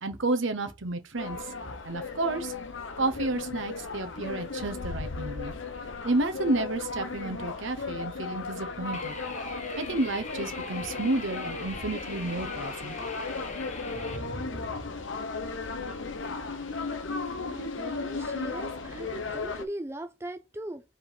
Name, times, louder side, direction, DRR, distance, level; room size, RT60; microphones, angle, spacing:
voice 1, 0.0-1.5 1.8-2.5 3.0-5.5 6.0-9.1 9.8-13.0 14.0-14.7, right 2 dB, 70° right, 1.0 m, -31 dB
sound 1, 1.2-19.7, left 4 dB, 65° left, 0.8 m, -36 dB
sound 2, 8.9-14.2, left 3 dB, 35° left, 1.0 m, -40 dB
voice 2, 17.4-20.8, right 1 dB, 10° right, 0.4 m, -39 dB
4.9 x 3.7 x 5.1 m
head